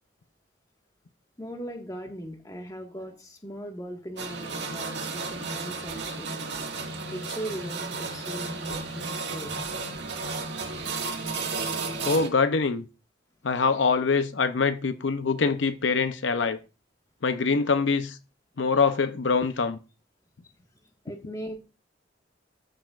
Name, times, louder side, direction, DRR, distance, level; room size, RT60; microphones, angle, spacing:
voice 1, 1.4-6.4 7.1-9.6 20.4-20.5 21.0-21.6, equal, 20° left, 1.6 m, -39 dB
sound 1, 4.2-12.3, right 4 dB, 65° right, 1.9 m, -33 dB
voice 2, 12.0-12.9 13.4-16.6 17.2-18.2 18.6-19.8, left 4 dB, 75° left, 0.6 m, -24 dB
13.5 x 6.7 x 2.5 m
head